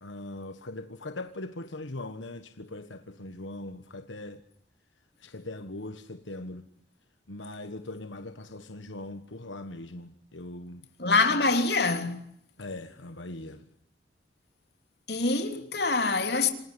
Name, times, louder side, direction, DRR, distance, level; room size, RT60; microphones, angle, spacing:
voice 1, 0.0-4.4 5.2-6.6 7.3-10.8 12.6-13.6, left 2 dB, 85° left, 1.5 m, -40 dB
voice 2, 11.0-12.3 15.1-16.5, left 3 dB, 60° left, 3.2 m, -25 dB
28.0 x 19.5 x 9.8 m
head